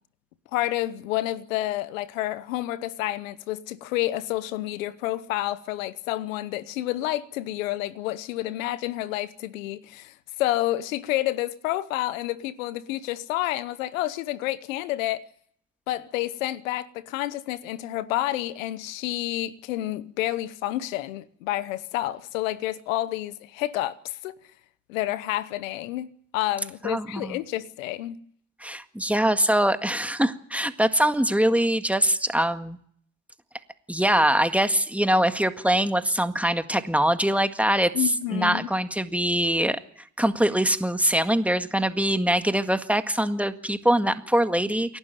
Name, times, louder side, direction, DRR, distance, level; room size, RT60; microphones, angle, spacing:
voice 1, 0.5-15.2 15.9-24.3 24.9-26.1 26.3-28.2 37.9-38.7, left 15 dB, 90° left, 1.0 m, -29 dB
voice 2, 26.8-27.4 28.6-32.8 33.9-37.9 38.3-39.8 40.2-45.0, right 1 dB, 5° right, 1.8 m, -23 dB
28.5 x 12.0 x 9.2 m
hypercardioid pair, 55°, 39 cm